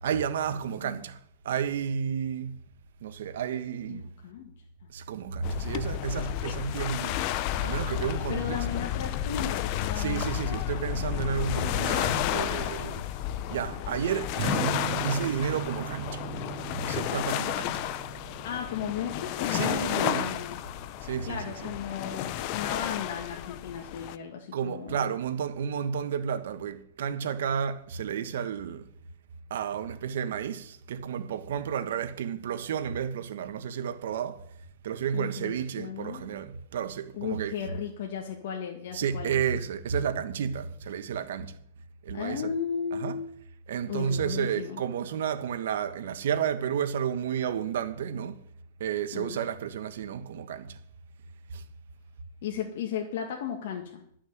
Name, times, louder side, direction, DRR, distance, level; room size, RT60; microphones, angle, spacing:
voice 1, 0.0-1.2 1.4-2.5 3.0-4.2 4.9-8.9 9.9-13.0 13.5-16.3 16.8-17.8 19.5-20.4 21.0-21.7 24.5-28.9 29.5-34.5 34.8-37.6 38.9-41.6 42.0-42.4 42.9-43.2 43.7-48.4 48.8-50.8 51.5-51.6, right 8 dB, 70° right, 1.3 m, -32 dB
voice 2, 0.5-1.0 3.9-4.4 8.3-10.2 18.4-20.6 21.3-25.0 35.1-36.3 37.1-39.4 42.1-43.3 43.9-44.8 49.1-49.4 52.4-54.0, left 7 dB, 60° left, 1.8 m, -35 dB
sound 1, 5.4-24.2, left 12 dB, 35° left, 0.6 m, -32 dB
Strum, 14.3-20.6, right 9 dB, 40° right, 2.6 m, -38 dB
11.5 x 6.4 x 9.3 m
supercardioid pair, 160°, 0 cm